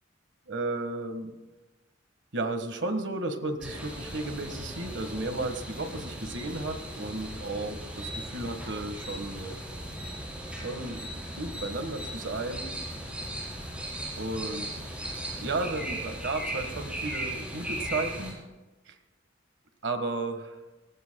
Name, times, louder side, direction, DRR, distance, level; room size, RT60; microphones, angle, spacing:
voice 1, 0.5-1.3 2.3-9.6 10.6-11.1 11.4-12.8 14.2-14.7 15.4-18.4 18.9-19.0 19.8-20.6, right 2 dB, 70° right, 7 dB, 1.6 m, -33 dB
sound 1, 3.6-18.3, right 1 dB, 5° right, 4.6 m, -37 dB
23.5 x 18.5 x 2.3 m, 1.1 s
head